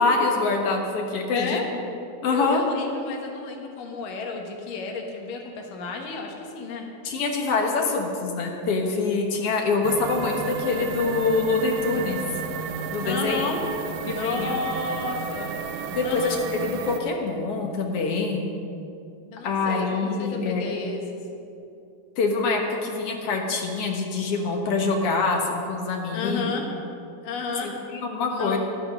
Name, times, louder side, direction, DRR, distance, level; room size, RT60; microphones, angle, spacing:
voice 1, 0.0-1.6 2.2-2.6 7.0-12.2 12.9-13.5 14.1-14.6 15.9-18.6 19.4-20.7 22.2-26.5 27.6-28.6, left 3 dB, 55° left, 1 dB, 1.8 m, -25 dB
voice 2, 1.3-1.7 2.3-6.9 13.0-13.6 14.0-15.5 16.0-16.4 19.3-21.0 26.1-26.7 27.2-27.8 28.3-28.6, left 4 dB, 80° left, 2 dB, 3.0 m, -32 dB
sound 1, 9.8-17.0, right 6 dB, 90° right, 2.3 m, -32 dB
12.0 x 11.5 x 5.5 m, 2.6 s
omnidirectional pair, 3.8 m